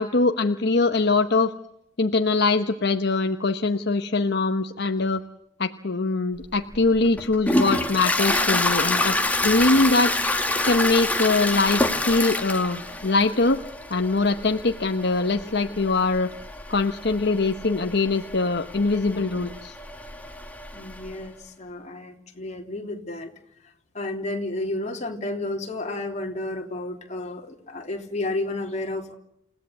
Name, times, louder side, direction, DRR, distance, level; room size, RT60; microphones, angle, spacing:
voice 1, 0.0-1.5 2.0-5.2 5.6-9.2 9.4-10.1 10.6-13.6 13.9-16.3 16.7-19.7, left 3 dB, 60° left, 7 dB, 1.0 m, -22 dB
Toilet flush, 6.4-21.2, left 2 dB, 10° left, 2.2 m, -27 dB
voice 2, 20.7-23.3 23.6-29.1, left 2 dB, 35° left, 2 dB, 3.4 m, -32 dB
29.0 x 17.0 x 8.4 m, 0.78 s
head